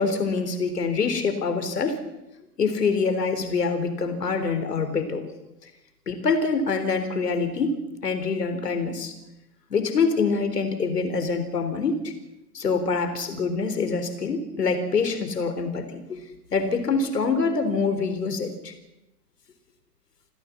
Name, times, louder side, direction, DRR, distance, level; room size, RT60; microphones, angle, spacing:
voice 1, 0.0-2.0 2.6-5.2 6.1-9.1 9.7-12.1 12.5-16.2 16.5-18.7, left 4 dB, 75° left, 8 dB, 4.0 m, -25 dB
28.5 x 15.0 x 7.3 m, 0.94 s
figure-of-eight pair, 105°, 48 cm